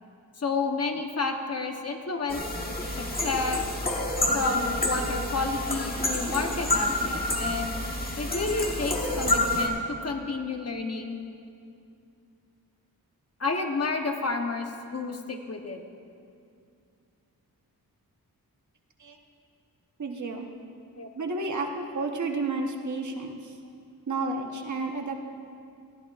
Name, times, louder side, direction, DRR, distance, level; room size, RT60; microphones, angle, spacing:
voice 1, 0.4-2.4 3.0-3.6 4.3-7.7 8.2-11.2 13.4-15.8 21.0-21.1, left 4 dB, 40° left, 4 dB, 0.9 m, -30 dB
sound 1, 2.3-9.7, left 1 dB, 25° left, 1.4 m, -28 dB
voice 2, 20.0-20.5 21.1-23.6 24.1-25.2, right 3 dB, 50° right, 2 dB, 1.1 m, -31 dB
19.0 x 14.5 x 2.5 m, 2.4 s
wide cardioid pair, 140°, 37 cm